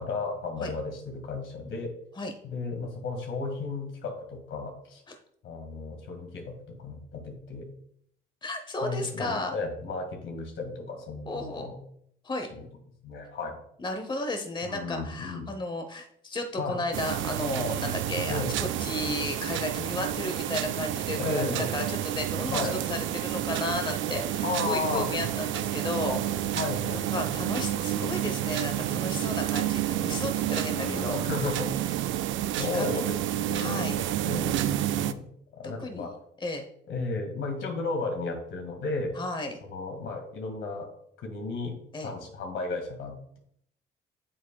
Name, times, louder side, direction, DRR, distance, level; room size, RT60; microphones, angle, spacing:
voice 1, 0.0-1.9 2.4-5.0 5.4-7.7 8.8-11.8 12.5-12.7 13.0-13.6 14.6-15.5 16.6-16.8 18.2-18.5 21.2-21.7 22.5-22.7 24.4-25.1 26.5-27.3 30.4-31.9 32.6-33.9 34.2-35.3 35.5-36.1 36.9-39.1 39.6-40.9 41.2-41.8 42.0-43.4, left 3 dB, 75° left, 3 dB, 1.9 m, -34 dB
voice 2, 8.4-9.5 11.3-11.7 12.2-12.5 13.8-21.4 21.7-26.2 26.9-31.2 32.6-32.9 33.5-34.0 35.6-36.1 36.4-36.7 39.2-39.6 41.9-42.1, left 2 dB, 25° left, 5 dB, 0.9 m, -33 dB
sound 1, 16.9-35.1, right 12 dB, 75° right, 0.5 m, -30 dB
8.6 x 7.3 x 2.3 m, 0.69 s
cardioid pair, 90°, 20 cm